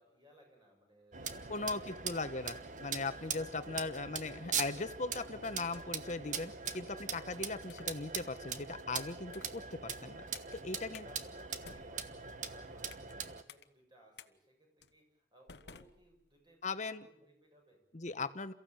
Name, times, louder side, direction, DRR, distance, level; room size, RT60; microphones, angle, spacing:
voice 1, 0.0-2.0 3.3-3.9 10.7-17.8, equal, 25° right, 1 dB, 6.9 m, -64 dB
sound 1, 1.1-13.4, right 6 dB, 45° right, 1.2 m, -42 dB
sound 2, 1.1-8.1, equal, 80° right, 3.9 m, -60 dB
voice 2, 1.5-10.2 10.5-11.1 16.6-17.1 17.9-18.5, left 3 dB, 45° left, 11 dB, 1.1 m, -39 dB
sound 3, 5.5-6.1 6.6-6.9 7.6-7.9 8.5-8.8 9.3-9.6 10.3-10.6 10.9-11.1 11.5-13.2 13.5-13.6 14.2-14.3 14.8-15.0 15.5-16.5, left 6 dB, 70° left, 1.0 m, -57 dB
28.5 x 15.0 x 8.9 m, 0.80 s
head